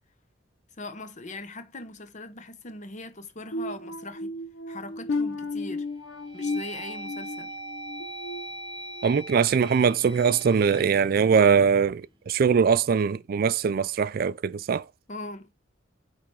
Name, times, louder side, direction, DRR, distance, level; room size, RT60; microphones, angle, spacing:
voice 1, 0.8-4.3 4.7-5.9 6.3-7.5 15.1-15.5, left 2 dB, 40° left, 0.9 m, -40 dB
sound 1, 3.5-9.2 9.6-9.9 10.4-10.6, left 2 dB, 90° left, 0.7 m, -34 dB
sound 2, 5.1-5.5 6.0-12.2, right 1 dB, 25° right, 1.0 m, -41 dB
voice 2, 9.0-14.8, right 6 dB, 50° right, 0.3 m, -22 dB
8.7 x 3.4 x 4.5 m
head